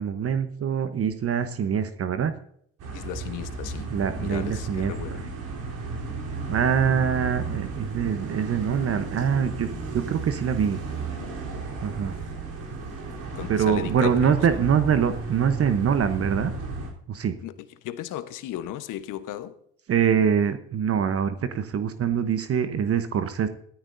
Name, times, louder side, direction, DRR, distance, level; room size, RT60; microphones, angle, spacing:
voice 1, 0.0-2.3 3.9-4.9 6.5-10.8 11.8-12.2 13.5-16.5 17.1-17.3 19.9-23.5, right 7 dB, 40° right, 1.0 m, -24 dB
sound 1, 2.8-16.9, right 4 dB, 60° right, 3.7 m, -34 dB
voice 2, 2.9-3.9 4.2-5.3 13.3-14.4 17.4-17.5 17.8-19.5, left 12 dB, 60° left, 1.2 m, -35 dB
16.0 x 13.5 x 2.7 m
hypercardioid pair, 65°, 36 cm